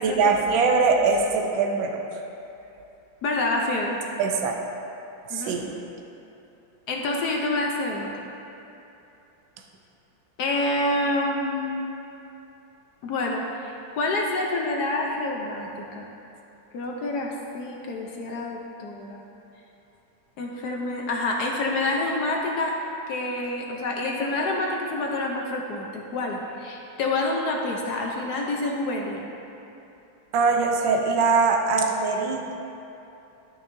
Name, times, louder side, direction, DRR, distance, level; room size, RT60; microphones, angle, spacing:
voice 1, 0.0-2.0 4.2-4.5 5.3-5.7 30.3-32.5, right 4 dB, 70° right, 3 dB, 1.4 m, -22 dB
voice 2, 3.2-4.0 5.3-5.6 6.9-8.3 10.4-11.9 13.0-15.7 16.0-16.1 16.7-19.2 20.4-22.7 23.1-29.2, left 2 dB, 65° left, 0 dB, 1.1 m, -27 dB
13.0 x 5.8 x 2.6 m, 2.9 s
omnidirectional pair, 2.3 m